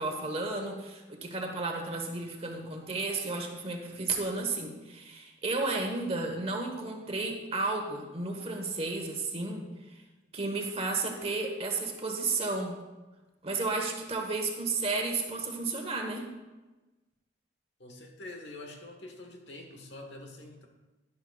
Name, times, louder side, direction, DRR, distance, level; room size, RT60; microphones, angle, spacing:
voice 1, 0.0-10.0 10.3-12.7 13.4-16.2, right 3 dB, 35° right, 2 dB, 1.3 m, -33 dB
voice 2, 17.8-20.7, left 2 dB, 65° left, 2 dB, 1.5 m, -45 dB
11.5 x 11.0 x 2.4 m, 1.1 s
head